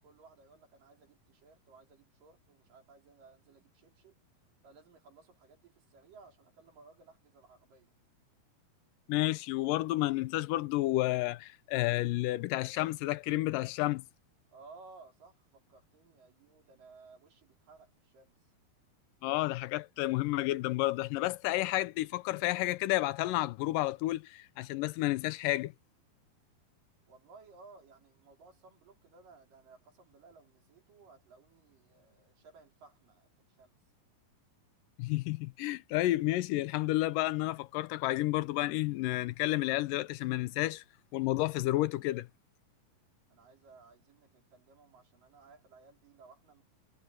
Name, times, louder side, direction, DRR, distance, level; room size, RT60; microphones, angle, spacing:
voice 1, 0.0-4.2 4.6-7.9 14.5-18.3 27.1-33.8 43.3-46.6, right 4 dB, 70° right, 5.7 m, -58 dB
voice 2, 9.1-14.0 19.2-25.7 35.0-40.8 41.1-42.3, left 17 dB, 80° left, 2.1 m, -31 dB
omnidirectional pair, 4.1 m